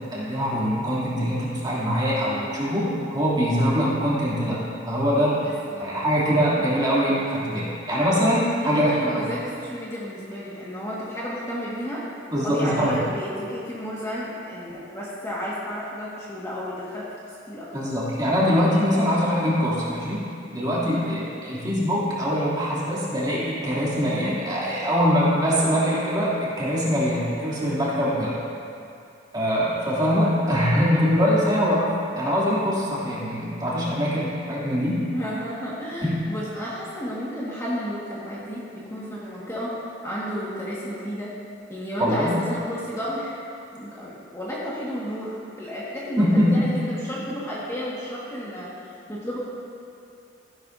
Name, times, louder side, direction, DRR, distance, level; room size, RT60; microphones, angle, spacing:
voice 1, 0.0-5.4 5.8-9.3 12.3-12.9 17.7-20.2 20.5-28.4 29.3-35.0 36.0-36.1 42.0-42.4 46.2-46.7, equal, 25° right, -8 dB, 2.8 m, -23 dB
voice 2, 5.4-5.9 8.6-12.0 12.4-17.0 17.5-17.7 20.9-21.2 35.1-39.7 40.0-41.3 41.7-43.3 43.7-48.7 49.1-49.4, equal, 15° left, -8 dB, 1.7 m, -32 dB
15.5 x 11.0 x 2.7 m, 2.5 s
head